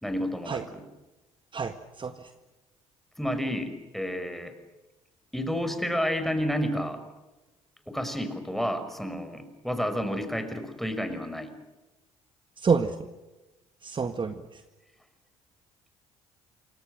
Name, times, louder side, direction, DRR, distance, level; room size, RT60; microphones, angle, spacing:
voice 1, 0.0-0.8 3.2-4.6 5.3-7.0 7.9-11.5, equal, ahead, 8 dB, 5.5 m, -30 dB
voice 2, 1.5-2.3 12.6-13.0 13.8-14.6, right 5 dB, 30° right, 9 dB, 1.8 m, -28 dB
28.0 x 25.0 x 6.5 m, 1.1 s
figure-of-eight pair, 50°, 17 cm